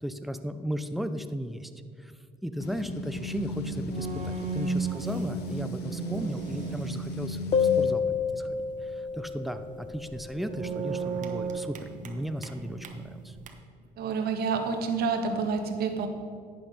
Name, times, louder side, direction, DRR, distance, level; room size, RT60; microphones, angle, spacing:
voice 1, 0.0-1.7 2.0-2.1 2.4-8.0 8.3-13.4, equal, ahead, 9 dB, 0.6 m, -35 dB
sound 1, 2.6-8.0, left 2 dB, 75° left, 1.0 m, -36 dB
sound 2, 3.5-13.5, right 5 dB, 50° right, 1.2 m, -37 dB
sound 3, 7.5-10.8, left 6 dB, 35° left, 0.6 m, -29 dB
voice 2, 14.0-16.1, right 5 dB, 70° right, 5 dB, 1.4 m, -28 dB
11.0 x 8.7 x 5.2 m, 2.4 s
cardioid pair, 110°, 17 cm